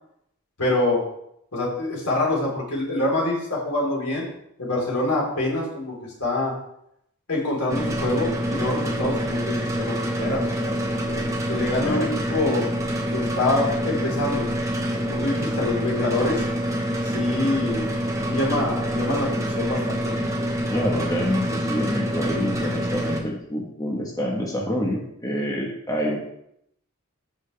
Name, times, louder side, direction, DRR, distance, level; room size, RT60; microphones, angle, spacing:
voice 1, 0.6-1.0 1.5-4.3 4.6-6.5 7.3-12.7 13.1-14.5 15.0-16.4 17.0-17.9 18.3-20.0, left 2 dB, 90° left, -3 dB, 4.1 m, -25 dB
sound 1, 7.7-23.2, equal, 15° right, 1.2 m, -26 dB
voice 2, 11.8-12.1 20.7-26.2, equal, 15° left, -1 dB, 1.4 m, -27 dB
14.0 x 6.0 x 3.4 m, 0.75 s
head